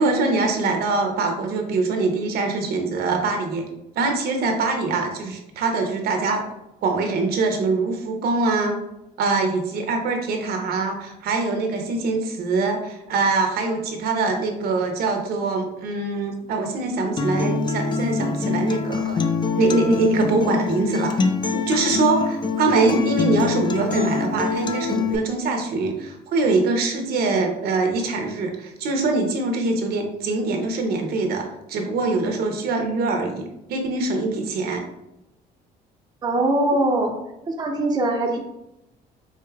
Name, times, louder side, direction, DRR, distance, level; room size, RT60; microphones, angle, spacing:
voice 1, 0.0-3.6 3.9-6.4 6.8-8.8 9.2-19.2 19.5-21.2 21.5-34.8, right 3 dB, 65° right, 3 dB, 0.7 m, -23 dB
Acoustic guitar, 17.2-25.2, left 5 dB, 25° left, 0.4 m, -25 dB
voice 2, 36.2-37.2 37.4-38.4, right 2 dB, 25° right, 1 dB, 0.5 m, -22 dB
4.7 x 2.6 x 2.3 m, 0.87 s
cardioid pair, 110°, 17 cm